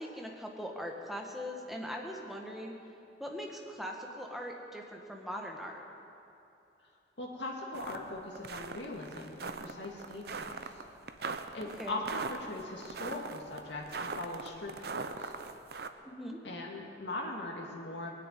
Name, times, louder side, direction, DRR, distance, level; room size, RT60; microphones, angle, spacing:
voice 1, 0.0-2.7 3.2-5.8 11.8-12.0 16.0-16.4, equal, ahead, 0 dB, 1.4 m, -41 dB
voice 2, 7.2-10.7 11.5-15.3 16.4-18.1, left 2 dB, 75° left, -1 dB, 2.1 m, -40 dB
sound 1, 7.7-8.0 8.3-15.9, right 4 dB, 60° right, 0.7 m, -40 dB
20.0 x 6.8 x 9.2 m, 2.8 s
head